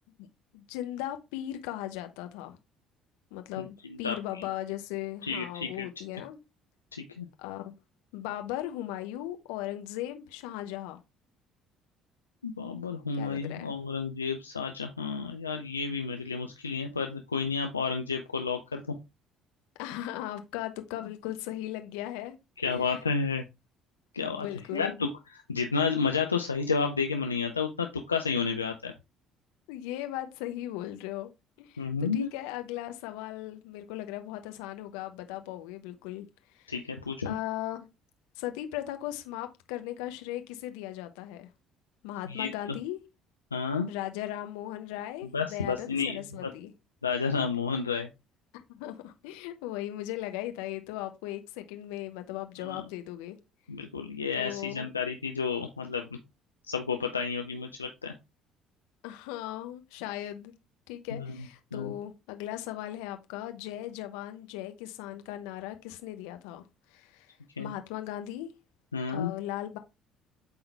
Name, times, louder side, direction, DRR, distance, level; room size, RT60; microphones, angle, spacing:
voice 1, 0.5-2.6 3.3-6.4 7.4-7.7 8.1-11.0 13.2-13.7 19.8-22.4 22.6-22.9 24.2-25.0 29.7-31.3 31.6-36.3 36.5-36.7 37.2-37.9 38.4-41.5 42.0-43.0 43.9-46.7 48.7-53.4 54.3-54.8 59.0-60.5 60.9-66.6 66.9-68.5 69.1-69.8, left 14 dB, 70° left, 0.9 m, -38 dB
voice 2, 4.0-4.4 5.2-5.9 6.9-7.3 12.4-18.9 22.6-23.4 24.1-24.5 24.7-28.9 31.8-32.3 36.7-37.4 42.3-42.5 43.5-43.9 45.3-46.5 47.0-48.1 52.6-52.7 53.7-56.2 56.6-58.1 61.1-61.4 61.7-61.9 67.6-67.7 68.9-69.3, left 5 dB, 90° left, 0.5 m, -31 dB
8.2 x 3.9 x 3.4 m
figure-of-eight pair, 55°, 0 cm